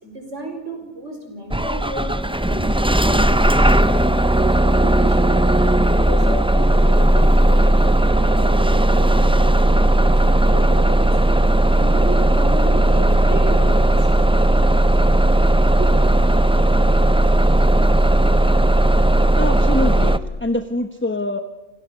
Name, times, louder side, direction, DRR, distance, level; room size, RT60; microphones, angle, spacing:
voice 1, 0.0-14.1 15.8-15.9, right 2 dB, 70° right, 4 dB, 5.3 m, -33 dB
Bus / Engine starting, 1.5-20.2, right 1 dB, 5° right, 0.6 m, -16 dB
voice 2, 19.4-21.4, left 1 dB, 10° left, 7 dB, 1.1 m, -24 dB
29.0 x 27.0 x 6.9 m, 1.0 s
omnidirectional pair, 1.3 m